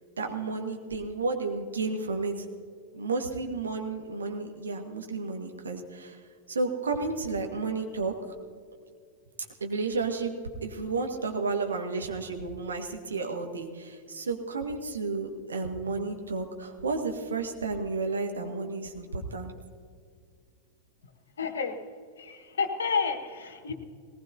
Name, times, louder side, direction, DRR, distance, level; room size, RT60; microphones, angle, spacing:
voice 1, 0.2-2.4 2.9-6.2 6.5-8.2 9.6-10.3 10.6-19.5, right 3 dB, 70° right, 3 dB, 1.7 m, -32 dB
voice 2, 21.4-21.7 22.2-23.7, left 5 dB, 70° left, 6 dB, 1.5 m, -30 dB
19.5 x 19.0 x 2.8 m, 2.2 s
figure-of-eight pair, 90°, 0 cm